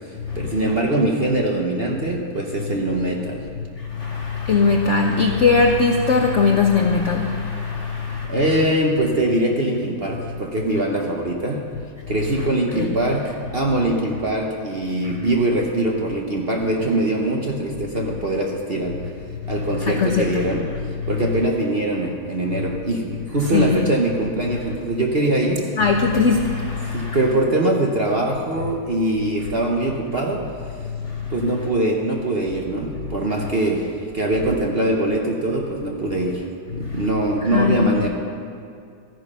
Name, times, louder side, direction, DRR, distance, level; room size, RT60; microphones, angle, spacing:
voice 1, 0.3-3.4 8.3-11.6 12.1-19.0 19.5-20.7 21.1-25.6 26.9-30.4 31.3-36.5 36.7-38.1, right 1 dB, 40° right, 0 dB, 0.9 m, -22 dB
voice 2, 4.4-7.4 7.8-7.9 12.7-12.9 19.8-20.4 23.5-23.9 25.8-26.6 37.5-38.1, left 4 dB, 60° left, 3 dB, 0.7 m, -18 dB
13.5 x 9.8 x 5.4 m, 2.3 s
omnidirectional pair, 2.1 m